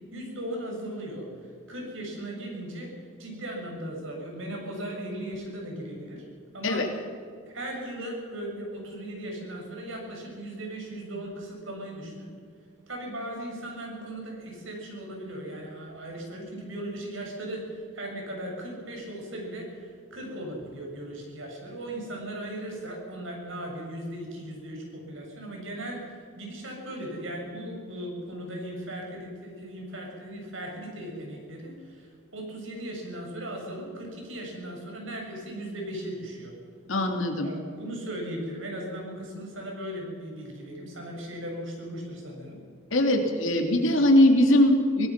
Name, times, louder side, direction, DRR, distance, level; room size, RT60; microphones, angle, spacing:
voice 1, 0.1-1.3 1.7-2.9 3.2-6.3 6.5-6.9 7.5-12.3 12.9-36.5 37.4-42.6, right 1 dB, 70° right, 0 dB, 7.2 m, -37 dB
voice 2, 36.9-37.5 42.9-45.1, left 1 dB, 70° left, 3 dB, 3.0 m, -21 dB
25.0 x 17.5 x 6.1 m, 2.4 s
head